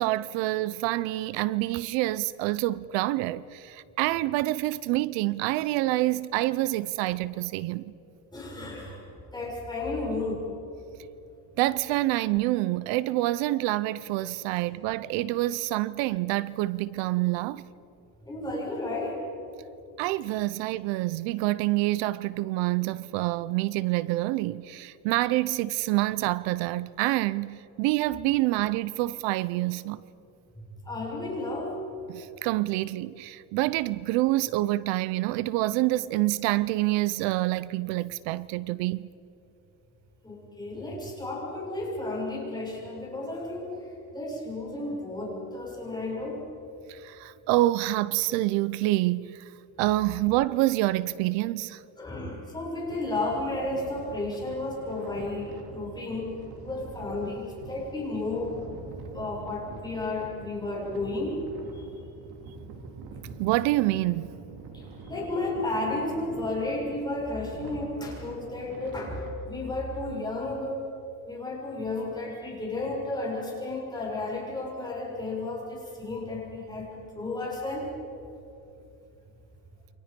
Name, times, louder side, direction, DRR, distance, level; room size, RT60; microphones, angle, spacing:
voice 1, 0.0-7.9 11.6-17.6 20.0-30.0 32.1-39.1 46.9-49.4 49.8-51.8 63.4-64.4, right 17 dB, 75° right, 0.8 m, -27 dB
voice 2, 8.3-10.5 18.2-19.3 30.5-31.8 40.2-46.4 52.0-56.3 56.6-58.7 59.1-61.4 61.8-61.9 64.7-70.9 71.3-77.9, left 2 dB, 10° left, 6.9 m, -33 dB
sound 1, 52.9-69.3, right 4 dB, 60° right, 3.5 m, -45 dB
29.0 x 25.0 x 5.3 m
cardioid pair, 145°, 44 cm